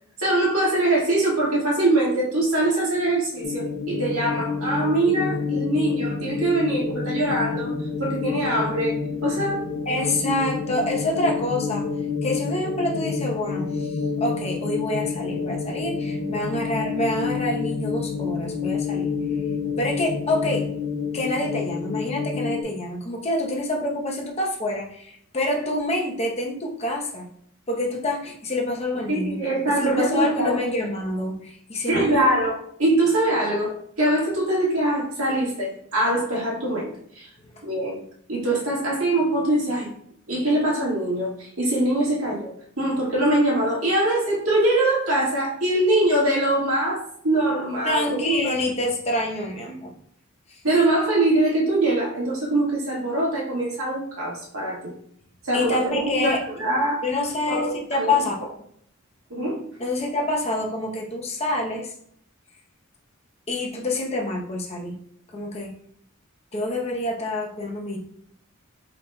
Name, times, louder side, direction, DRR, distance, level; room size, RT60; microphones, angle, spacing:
voice 1, 0.2-7.7 8.0-9.0 9.2-9.7 29.1-30.6 31.9-37.3 37.6-38.0 38.3-39.9 40.3-48.2 50.6-54.9 55.4-57.0 57.5-57.7 58.0-58.1 59.3-59.6, right 1 dB, 85° right, -4 dB, 1.6 m, -23 dB
sound 1, 3.4-22.6, left 5 dB, 90° left, 0.6 m, -28 dB
voice 2, 9.9-11.9 12.2-19.1 19.8-20.7 21.1-27.3 27.7-29.4 29.7-32.4 37.4-37.6 47.8-49.9 50.5-50.6 55.5-56.4 57.0-58.3 59.8-61.9 63.5-65.0 65.3-65.7 66.5-68.0, left 1 dB, 30° left, -1 dB, 0.8 m, -27 dB
4.8 x 3.9 x 2.2 m, 0.67 s
head